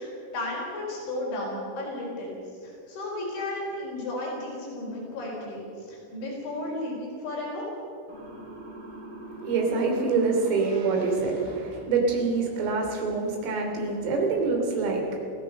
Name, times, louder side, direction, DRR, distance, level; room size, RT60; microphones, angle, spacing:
voice 1, 0.0-2.4 2.6-7.7, left 1 dB, 60° left, -3 dB, 6.6 m, -34 dB
Motor vehicle (road) / Siren, 8.1-12.2, equal, 25° right, 6.3 m, -44 dB
voice 2, 9.4-15.2, right 4 dB, 75° right, 1 dB, 5.6 m, -26 dB
25.0 x 16.5 x 6.7 m, 2.6 s
omnidirectional pair, 6.0 m